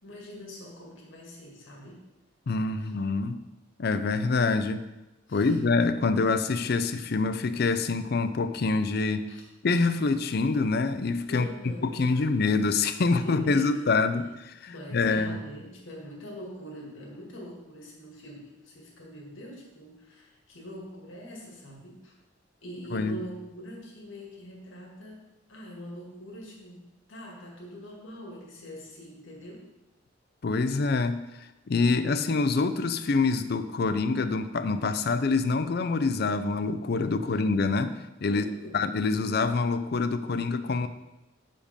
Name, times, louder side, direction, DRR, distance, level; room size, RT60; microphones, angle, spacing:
voice 1, 0.0-2.0 2.8-2.9 5.3-5.6 9.3-9.4 11.3-12.2 13.1-13.8 14.7-22.1 22.6-29.7 38.3-38.8, equal, 80° left, -2 dB, 2.0 m, -43 dB
voice 2, 2.5-3.4 3.8-4.9 5.3-9.3 9.6-11.5 11.8-15.4 22.9-23.2 30.4-31.2 31.7-38.5 38.7-40.9, left 3 dB, 50° left, 11 dB, 0.4 m, -26 dB
6.7 x 5.1 x 5.1 m, 0.98 s
head